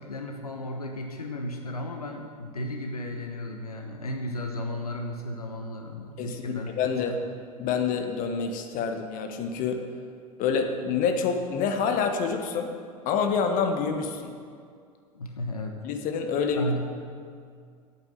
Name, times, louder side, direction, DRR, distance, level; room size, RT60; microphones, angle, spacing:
voice 1, 0.0-6.7 7.1-7.2 15.1-15.8 16.6-16.8, left 1 dB, 85° left, 3 dB, 1.0 m, -34 dB
voice 2, 6.2-7.2 7.6-9.9 10.4-12.8 13.0-14.4 15.8-16.8, left 5 dB, 45° left, 5 dB, 1.3 m, -27 dB
9.0 x 8.4 x 8.8 m, 2.2 s
figure-of-eight pair, 75°, 19 cm